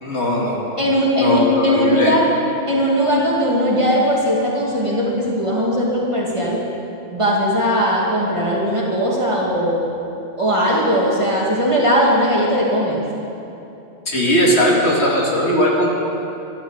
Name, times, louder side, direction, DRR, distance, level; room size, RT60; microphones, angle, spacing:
voice 1, 0.0-0.6 1.2-2.1 14.1-15.9, equal, 70° left, -3 dB, 2.7 m, -18 dB
voice 2, 0.8-2.2 2.7-6.6 7.1-9.9 10.4-13.0, equal, 25° right, -5 dB, 2.6 m, -18 dB
13.0 x 12.0 x 7.4 m, 2.8 s
omnidirectional pair, 1.2 m